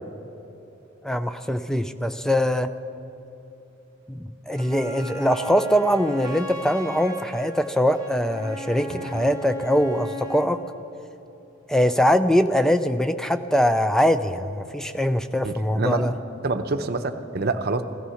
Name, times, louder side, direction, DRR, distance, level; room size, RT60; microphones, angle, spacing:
voice 1, 1.0-2.7 4.1-10.6 11.7-16.1, equal, 5° left, 10 dB, 0.4 m, -22 dB
Wind instrument woodwind instrument, 4.5-10.6, equal, 20° right, 1.2 m, -38 dB
voice 2, 15.4-16.1 16.4-17.8, right 3 dB, 50° right, 8 dB, 0.8 m, -27 dB
16.5 x 14.5 x 5.7 m, 3.0 s
head